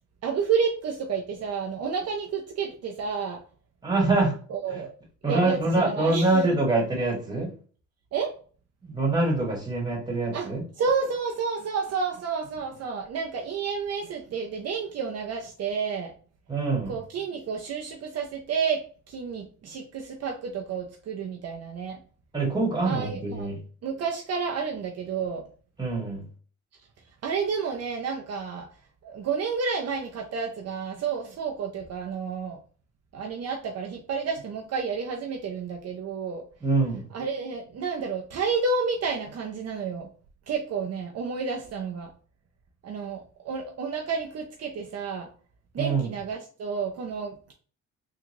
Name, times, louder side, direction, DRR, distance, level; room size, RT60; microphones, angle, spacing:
voice 1, 0.2-3.4 4.5-4.9 5.2-6.5 8.1-8.3 10.3-10.5 10.8-16.1 16.9-22.0 22.8-23.5 23.8-25.4 27.2-28.7 29.0-32.6 33.1-36.4 37.1-40.1 40.5-42.1 42.8-45.3 45.7-47.5, right 5 dB, 55° right, 2 dB, 0.6 m, -30 dB
voice 2, 3.8-4.3 4.7-4.8 5.2-7.5 8.8-10.6 16.5-16.9 22.3-23.6 25.8-26.2 36.6-37.0 45.8-46.1, right 2 dB, 15° right, 0 dB, 1.6 m, -25 dB
3.7 x 2.4 x 3.1 m, 0.40 s
cardioid pair, 90°, 30 cm